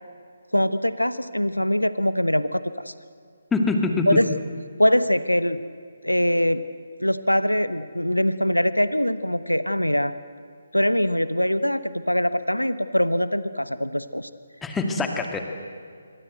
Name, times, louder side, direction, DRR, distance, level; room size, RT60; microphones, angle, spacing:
voice 1, 0.5-2.9 4.1-4.3 4.8-5.6 6.0-6.6 7.0-10.1 10.7-14.3, equal, 90° left, 13 dB, 1.1 m, -22 dB
voice 2, 3.5-4.2 14.6-15.4, left 3 dB, 5° left, 3 dB, 2.2 m, -24 dB
26.5 x 25.0 x 7.9 m, 2.2 s
figure-of-eight pair, 145°, 0 cm